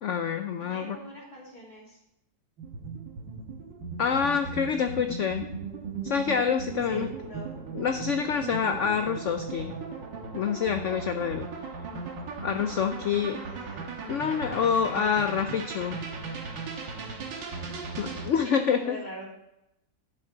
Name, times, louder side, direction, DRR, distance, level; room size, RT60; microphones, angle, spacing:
voice 1, 0.0-1.0 4.0-5.5 6.0-7.1 7.7-9.7 10.3-11.5 12.4-13.4 14.1-16.0 18.0-19.0, left 7 dB, 75° left, 8 dB, 0.6 m, -27 dB
voice 2, 0.6-2.0 6.9-7.5 13.1-13.8 17.7-17.8 18.2-19.2, equal, 25° left, -6 dB, 3.2 m, -43 dB
sound 1, 2.6-18.3, right 4 dB, 90° right, 2.0 m, -37 dB
11.0 x 7.4 x 3.9 m, 0.84 s
omnidirectional pair, 1.9 m